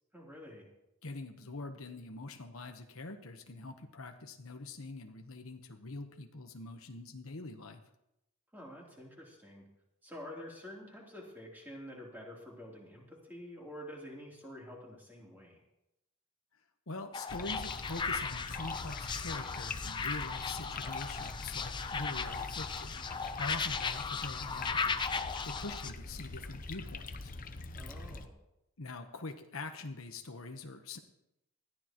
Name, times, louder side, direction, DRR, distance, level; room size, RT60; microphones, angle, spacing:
voice 1, 0.1-0.7 8.5-9.7 10.0-15.6 27.7-28.3, equal, 10° right, -3 dB, 3.4 m, -48 dB
voice 2, 1.0-7.8 16.9-23.0 23.4-24.9 25.4-27.3 28.8-31.0, left 2 dB, 75° left, 5 dB, 1.2 m, -44 dB
sound 1, 17.1-25.9, left 5 dB, 20° left, 0.4 m, -37 dB
sound 2, 17.3-28.3, left 3 dB, 40° left, 0.8 m, -44 dB
20.0 x 14.0 x 3.1 m, 0.87 s
head